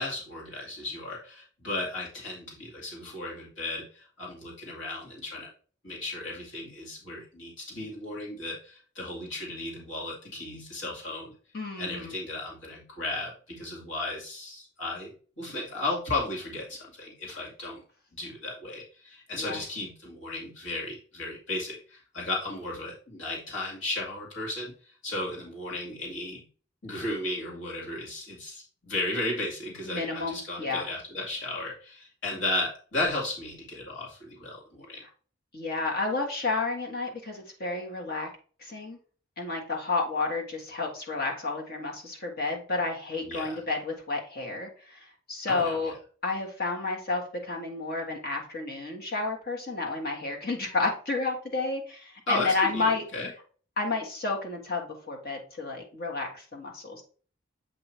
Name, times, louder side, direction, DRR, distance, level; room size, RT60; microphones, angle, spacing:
voice 1, 0.0-5.5 5.8-11.3 11.8-17.8 18.1-26.4 26.8-35.0 43.2-43.6 45.5-45.9 52.3-53.3, left 2 dB, 65° left, -3 dB, 2.0 m, -35 dB
voice 2, 11.5-12.1 19.3-19.6 29.9-30.8 35.5-38.3 38.6-39.0 39.4-45.9 46.2-53.0 53.8-57.0, left 3 dB, 50° left, 1 dB, 1.5 m, -31 dB
7.8 x 2.8 x 4.4 m, 0.41 s
head